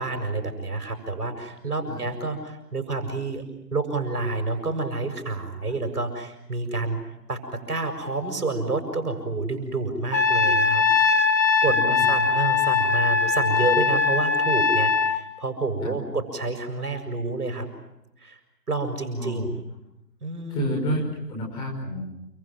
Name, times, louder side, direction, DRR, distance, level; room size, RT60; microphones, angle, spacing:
voice 1, 0.0-3.4 3.7-7.0 7.3-11.2 11.6-17.7 18.2-18.4 18.7-19.5 20.2-20.7, right 3 dB, 65° right, 6 dB, 7.1 m, -29 dB
Trumpet, 10.1-15.2, left 5 dB, 85° left, 4.5 m, -21 dB
voice 2, 11.6-12.1 15.8-16.0 19.2-19.4 20.5-22.0, equal, 10° left, 1 dB, 5.4 m, -29 dB
29.5 x 24.5 x 7.6 m, 0.88 s
figure-of-eight pair, 160°, 49 cm